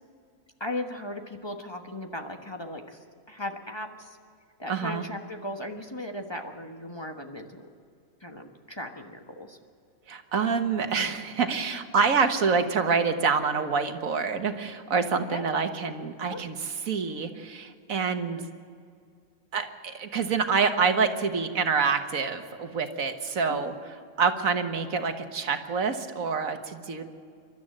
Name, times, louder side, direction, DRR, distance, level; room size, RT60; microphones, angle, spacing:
voice 1, 0.6-4.2 4.6-7.7 8.2-9.6 15.3-15.4 16.2-16.4 18.3-18.5 23.5-23.6, left 1 dB, 20° left, 4 dB, 1.3 m, -37 dB
voice 2, 4.7-5.0 10.1-16.6 16.9-18.4 19.5-23.7 24.2-27.0, right 5 dB, 85° right, 7 dB, 1.8 m, -26 dB
28.5 x 12.5 x 7.8 m, 2.3 s
omnidirectional pair, 1.4 m